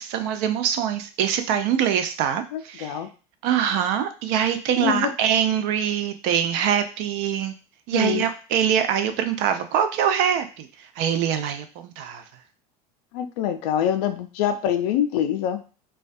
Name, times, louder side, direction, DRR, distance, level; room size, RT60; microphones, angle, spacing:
voice 1, 0.0-3.0 3.4-7.5 7.9-12.2, right 9 dB, 65° right, 8 dB, 0.4 m, -24 dB
voice 2, 2.5-3.1 4.8-5.1 7.9-8.2 13.1-15.6, left 10 dB, 75° left, 8 dB, 0.4 m, -25 dB
2.2 x 2.2 x 2.6 m, 0.35 s
hypercardioid pair, 85°, 20 cm